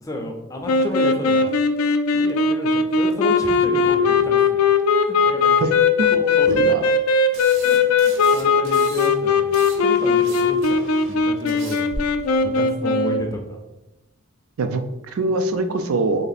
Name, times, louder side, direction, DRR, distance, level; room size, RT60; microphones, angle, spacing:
voice 1, 0.0-1.5 2.1-4.6 4.9-5.5 6.1-6.9 7.6-12.0 12.4-13.6, left 1 dB, 15° left, 2 dB, 0.4 m, -32 dB
sound 1, 0.7-13.3, left 4 dB, 85° left, 0.4 m, -19 dB
voice 2, 6.5-6.9 14.6-16.3, right 3 dB, 80° right, 8 dB, 0.4 m, -23 dB
sound 2, 7.3-9.1 9.4-12.0, right 2 dB, 60° right, 1.1 m, -38 dB
3.3 x 2.8 x 4.0 m, 1.0 s
head